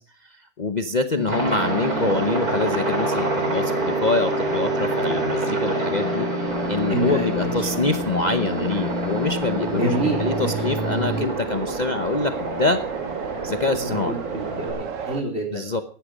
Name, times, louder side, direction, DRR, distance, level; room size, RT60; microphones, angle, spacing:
voice 1, 0.2-12.8 13.4-14.2 15.5-15.8, left 3 dB, 35° left, 8 dB, 1.0 m, -25 dB
sound 1, 1.1-11.3, right 1 dB, ahead, 4.8 m, -29 dB
Aircraft, 1.3-14.7, right 2 dB, 80° right, 4.5 m, -29 dB
sound 2, 6.5-15.2, right 7 dB, 60° right, 1.4 m, -34 dB
voice 2, 6.9-7.7 9.7-10.5 13.7-15.7, right 2 dB, 45° right, 2 dB, 4.3 m, -28 dB
17.0 x 11.5 x 5.1 m, 0.42 s
omnidirectional pair, 1.6 m